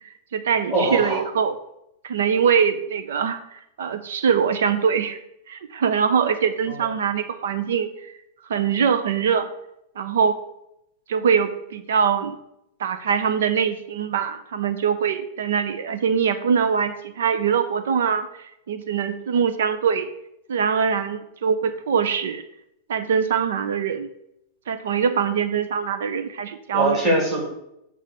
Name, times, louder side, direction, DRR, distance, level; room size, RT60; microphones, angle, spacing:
voice 1, 0.0-1.5 2.0-5.2 5.5-8.1 8.5-9.5 10.0-10.4 11.1-12.4 12.8-20.1 20.5-22.4 22.9-24.1 24.7-27.0, right 7 dB, 85° right, 9 dB, 0.7 m, -23 dB
voice 2, 0.7-1.2 6.7-6.9 26.7-27.5, right 1 dB, 10° right, -6 dB, 2.8 m, -22 dB
8.4 x 3.6 x 6.6 m, 0.80 s
supercardioid pair, 180°, 0 cm